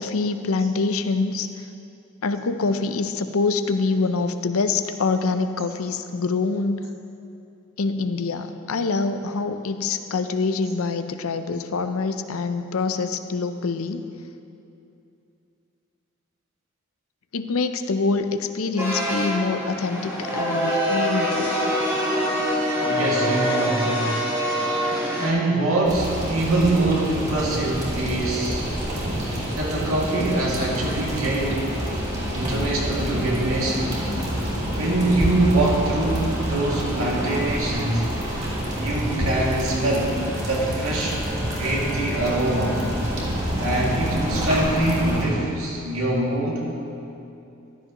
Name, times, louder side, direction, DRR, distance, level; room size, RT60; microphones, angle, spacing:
voice 1, 0.0-1.5 2.2-6.8 7.8-14.0 17.3-21.5, left 4 dB, 85° left, 9 dB, 0.6 m, -25 dB
sound 1, 18.8-25.3, equal, 10° right, 1.4 m, -24 dB
voice 2, 22.8-24.2 25.2-28.7 29.6-31.7 32.3-33.9 34.7-38.1 38.8-40.1 40.4-41.2 41.6-42.8 43.6-46.7, right 2 dB, 80° right, -4 dB, 2.3 m, -24 dB
sound 2, 25.8-45.3, equal, 35° right, 3.1 m, -27 dB
Bowed string instrument, 39.9-44.7, left 1 dB, 5° left, 0.6 m, -40 dB
15.0 x 12.0 x 3.0 m, 2.7 s
head